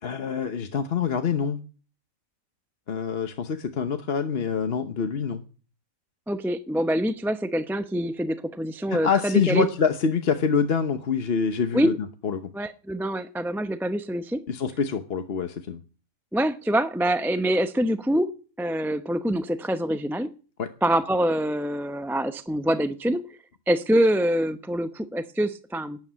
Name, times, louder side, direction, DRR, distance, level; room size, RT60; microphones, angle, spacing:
voice 1, 0.0-1.6 2.9-5.4 8.9-11.9 12.2-12.4 14.5-15.8 20.6-20.7, left 6 dB, 50° left, 8 dB, 1.1 m, -25 dB
voice 2, 6.3-9.7 11.7-11.9 12.5-14.4 16.3-18.3 18.6-20.3 20.8-23.2 23.7-26.0, right 1 dB, ahead, 10 dB, 0.5 m, -25 dB
12.0 x 9.8 x 8.8 m, 0.38 s
omnidirectional pair, 1.4 m